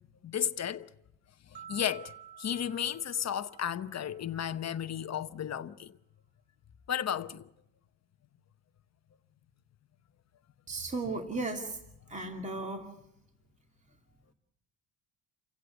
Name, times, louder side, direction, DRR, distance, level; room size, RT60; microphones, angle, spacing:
voice 1, 0.2-0.9 1.5-2.1 2.4-5.9 6.9-7.5, left 9 dB, 35° left, 1.0 m, -33 dB
sound 1, 1.5-4.7, right 9 dB, 55° right, 3.8 m, -52 dB
voice 2, 10.7-11.8 12.1-12.9, right 3 dB, 15° right, 2.5 m, -35 dB
29.0 x 16.5 x 8.2 m
cardioid pair, 155°, 47 cm